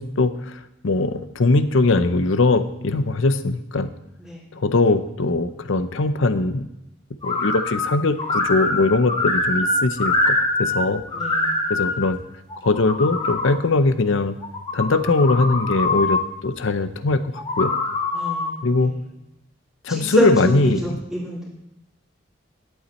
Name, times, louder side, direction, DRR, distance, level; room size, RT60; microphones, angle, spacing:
voice 1, 0.0-3.9 4.5-6.7 7.2-11.0 11.7-12.2 12.6-14.4 14.7-17.7 18.6-18.9 19.8-21.0, left 3 dB, 80° left, 12 dB, 0.7 m, -21 dB
sound 1, 7.2-7.9 8.2-10.8 11.1-12.0 12.5-13.5 14.4-16.2 17.4-18.5, left 2 dB, 25° left, 1.5 m, -23 dB
voice 2, 11.1-11.5 18.1-18.9 19.9-21.4, equal, 5° right, -7 dB, 2.4 m, -26 dB
11.0 x 8.3 x 4.2 m, 0.87 s
head